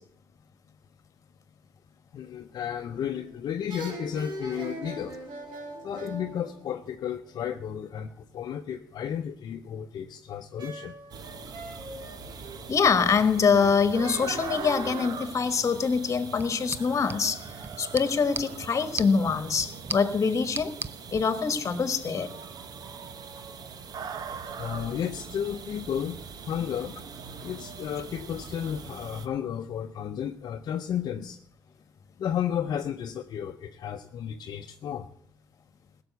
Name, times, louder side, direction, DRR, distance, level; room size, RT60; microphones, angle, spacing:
voice 1, 2.1-5.2 5.8-11.0 24.6-27.0 27.4-31.4 32.2-35.1, left 9 dB, 60° left, 5 dB, 0.7 m, -33 dB
sound 1, 2.9-3.3 3.7-7.4 10.6-15.0, right 2 dB, 75° right, 3.4 m, -41 dB
sound 2, 11.1-29.3, right 6 dB, 55° right, 1.2 m, -41 dB
voice 2, 12.7-17.4 17.8-20.8 21.1-22.3, left 5 dB, 40° left, 11 dB, 1.4 m, -24 dB
Tapping mini-mag flashlight on palm and fingers, 16.3-21.3, right 4 dB, 25° right, 0.6 m, -39 dB
16.0 x 7.0 x 8.2 m, 0.69 s
cardioid pair, 80°, 8 cm